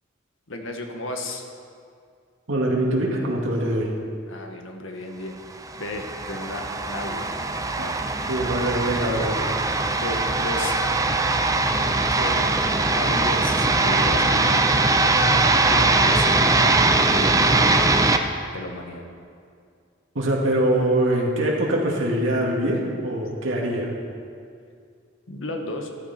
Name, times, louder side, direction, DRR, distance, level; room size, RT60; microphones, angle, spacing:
voice 1, 0.5-1.4 4.3-5.4 5.8-7.3 7.8-8.0 10.0-10.7 12.1-12.5 12.9-14.7 15.6-18.1 18.5-19.1 25.3-25.9, left 2 dB, 80° left, 3 dB, 1.5 m, -34 dB
voice 2, 2.5-3.9 7.8-7.9 8.3-9.5 20.1-23.9, right 1 dB, 80° right, -2 dB, 2.2 m, -23 dB
sound 1, 5.6-18.2, right 3 dB, 15° right, 0.6 m, -21 dB
14.0 x 11.5 x 4.4 m, 2.3 s
head